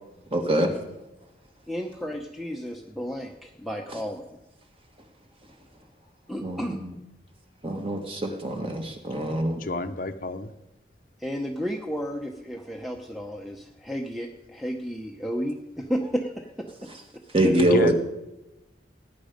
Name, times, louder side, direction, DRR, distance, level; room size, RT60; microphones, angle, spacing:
voice 1, 0.3-0.7 6.4-6.9 7.6-9.6 17.3-17.9, right 1 dB, 30° right, 4 dB, 1.7 m, -24 dB
voice 2, 1.7-4.3 6.3-6.8 11.2-16.7 17.4-17.5, equal, ahead, 1 dB, 0.9 m, -32 dB
voice 3, 9.6-10.5 17.6-17.9, left 2 dB, 50° left, 8 dB, 0.8 m, -29 dB
19.0 x 10.0 x 5.2 m, 0.96 s
head